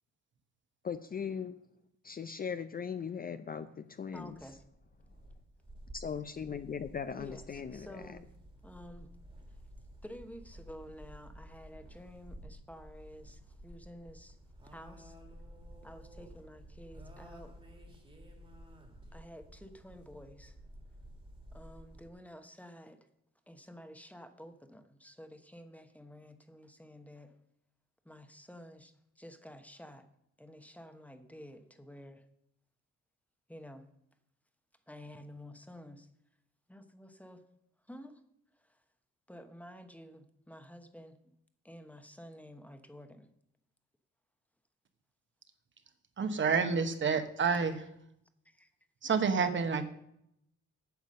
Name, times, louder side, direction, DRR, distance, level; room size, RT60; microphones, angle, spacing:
voice 1, 0.8-1.6 2.0-4.4 5.9-8.1, left 7 dB, 30° left, 11 dB, 0.5 m, -39 dB
voice 2, 4.1-4.6 7.2-8.3 8.6-9.1 9.5-9.6 10.0-14.4 14.6-15.2 15.8-17.6 19.1-20.6 21.5-23.1 23.5-27.3 28.0-30.1 30.4-32.3 33.5-33.9 34.9-36.1 36.7-37.4 37.9-38.2 38.5-38.8 39.3-41.2 41.6-43.3 48.4-48.7, equal, 5° left, 8 dB, 1.0 m, -51 dB
sound 1, 4.1-22.1, equal, 20° right, 1.8 m, -53 dB
voice 3, 46.2-47.7 49.0-49.8, right 5 dB, 40° right, 8 dB, 1.2 m, -28 dB
9.4 x 7.1 x 6.5 m, 0.75 s
cardioid pair, 110°, 30 cm